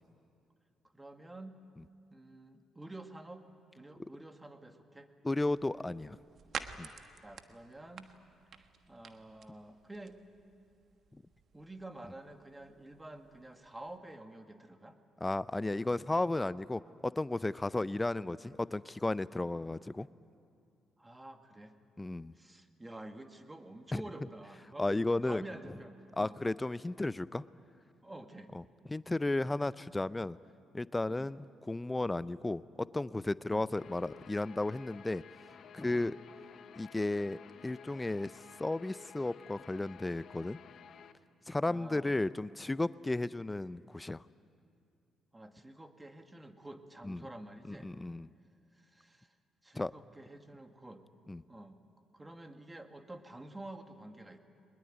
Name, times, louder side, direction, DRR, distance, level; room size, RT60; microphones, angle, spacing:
voice 1, 0.9-1.6 2.1-3.5 3.7-5.1 7.2-8.1 8.9-10.2 11.5-15.0 21.0-21.8 22.3-24.9 25.2-26.4 28.0-28.5 31.1-31.3 33.4-33.7 35.9-36.2 41.6-42.2 45.3-47.9 48.7-49.3 49.6-51.0 51.5-51.8 52.1-54.4, right 1 dB, 15° right, 7 dB, 2.0 m, -49 dB
voice 2, 5.2-6.2 6.8-6.9 15.2-20.1 22.0-22.3 24.8-25.4 26.2-27.4 28.5-28.6 28.9-30.4 30.7-35.2 35.7-36.1 36.8-38.3 38.6-40.6 41.5-44.2 47.1-47.2 47.7-48.3 49.8-49.9 51.3-51.4, left 2 dB, 20° left, 18 dB, 0.5 m, -34 dB
sound 1, 5.3-14.0, right 6 dB, 55° right, 1.3 m, -50 dB
Guitar, 33.7-41.1, left 7 dB, 60° left, 1.0 m, -54 dB
22.0 x 21.0 x 9.2 m, 2.6 s
hypercardioid pair, 50°, 0 cm